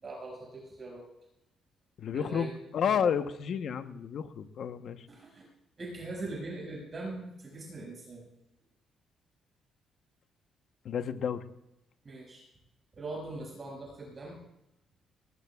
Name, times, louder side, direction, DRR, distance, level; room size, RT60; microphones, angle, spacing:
voice 1, 0.0-1.0 2.1-2.5 2.8-3.0 5.1-5.5 5.8-8.3 12.0-12.4 12.9-14.4, right 2 dB, 35° right, -3 dB, 6.0 m, -41 dB
voice 2, 2.0-5.1 10.8-11.4, left 7 dB, 65° left, 9 dB, 1.0 m, -31 dB
20.5 x 19.5 x 2.4 m, 0.86 s
cardioid pair, 90°, 0 cm